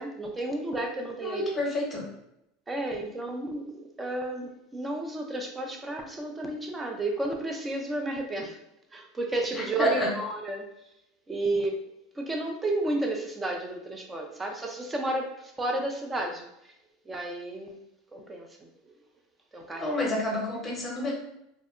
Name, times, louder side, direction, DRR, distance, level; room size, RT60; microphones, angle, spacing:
voice 1, 0.0-1.5 2.7-8.6 8.9-10.7 11.3-11.8 12.2-16.7 17.1-17.8 18.1-18.9 19.5-20.0, right 2 dB, 15° right, 2 dB, 0.4 m, -32 dB
voice 2, 1.2-2.1 9.5-10.1 19.8-21.1, left 1 dB, 15° left, -2 dB, 1.0 m, -29 dB
2.7 x 2.1 x 2.4 m, 0.84 s
supercardioid pair, 105°, 0 cm